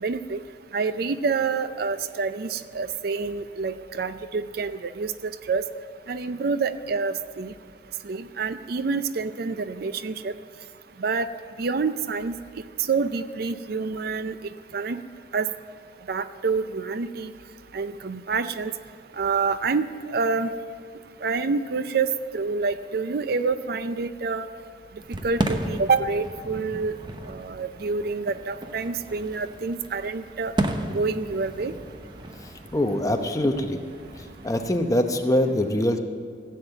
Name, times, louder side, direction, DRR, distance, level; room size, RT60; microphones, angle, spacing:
voice 1, 0.0-0.4 0.7-5.6 6.1-7.5 8.0-10.3 11.0-11.3 11.6-12.4 12.9-14.3 14.7-15.0 15.3-15.5 16.1-17.3 17.7-18.7 19.2-20.5 21.2-24.5 25.1-26.9 27.3-30.5 30.9-31.7, right 4 dB, 55° right, 12 dB, 0.5 m, -27 dB
Fireworks, 25.0-34.9, right 1 dB, 25° right, 0.7 m, -34 dB
voice 2, 32.4-33.8 34.2-36.0, left 1 dB, 20° left, 5 dB, 0.8 m, -24 dB
15.5 x 7.5 x 8.0 m, 2.2 s
head